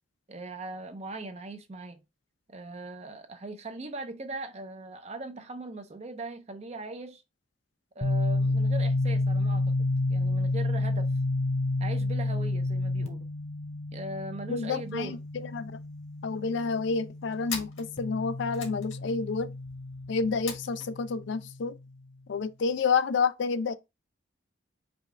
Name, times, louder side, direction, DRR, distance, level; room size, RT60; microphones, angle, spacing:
voice 1, 0.3-2.0 2.5-7.2 8.0-11.1 11.8-13.3 13.9-15.2, right 2 dB, 35° right, 0.6 m, -40 dB
sound 1, 8.0-21.6, left 2 dB, 35° left, 0.7 m, -30 dB
voice 2, 14.5-15.2 15.4-15.7 16.2-19.5 20.1-21.7 22.3-23.7, left 5 dB, 65° left, 0.4 m, -29 dB
sound 2, 14.7-15.0 15.3-15.4 15.6-16.3 16.8-20.9, left 6 dB, 85° left, 1.5 m, -42 dB
5.2 x 2.4 x 3.3 m
head